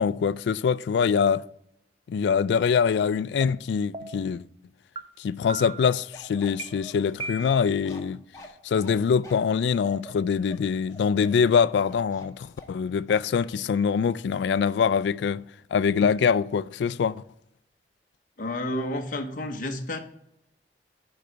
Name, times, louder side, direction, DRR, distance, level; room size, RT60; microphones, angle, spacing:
voice 1, 0.0-1.4 2.1-4.5 5.2-8.2 8.6-15.4 15.7-17.2, left 6 dB, 80° left, 0.3 m, -24 dB
sound 1, 3.4-3.5 3.9-4.3 5.0-5.1 5.5-6.0 6.6-6.7 7.2-7.8, right 3 dB, 30° right, 0.5 m, -37 dB
Bark, 5.8-12.8 13.1-13.3, left 1 dB, 20° left, 1.2 m, -46 dB
voice 2, 18.4-20.0, left 1 dB, 50° left, 0.8 m, -30 dB
9.9 x 4.0 x 4.5 m
head